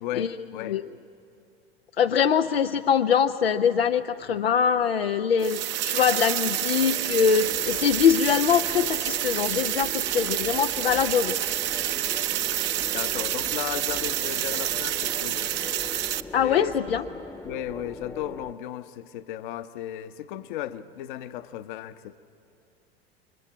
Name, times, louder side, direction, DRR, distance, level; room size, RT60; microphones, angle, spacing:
voice 1, 0.0-0.8 12.7-15.5 16.4-16.7 17.1-22.2, left 12 dB, 50° left, 12 dB, 1.0 m, -35 dB
voice 2, 2.0-11.4 11.7-11.8 16.3-17.0, left 7 dB, 75° left, 6 dB, 0.6 m, -23 dB
sound 1, 3.2-18.5, left 3 dB, 10° left, 1.0 m, -42 dB
sound 2, 5.4-16.2, right 13 dB, 35° right, 0.8 m, -28 dB
28.5 x 24.0 x 8.7 m, 2.6 s
figure-of-eight pair, 80°, 31 cm